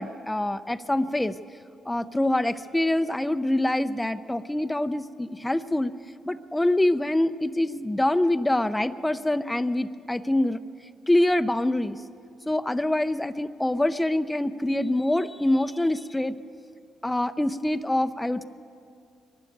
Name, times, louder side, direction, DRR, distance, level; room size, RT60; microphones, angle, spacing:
voice 1, 0.0-1.3 1.9-5.9 6.2-10.6 11.1-12.0 12.5-16.4 17.0-18.4, left 1 dB, 10° left, 10 dB, 0.6 m, -25 dB
22.5 x 12.5 x 9.3 m, 2.5 s
cardioid pair, 80°, 0 cm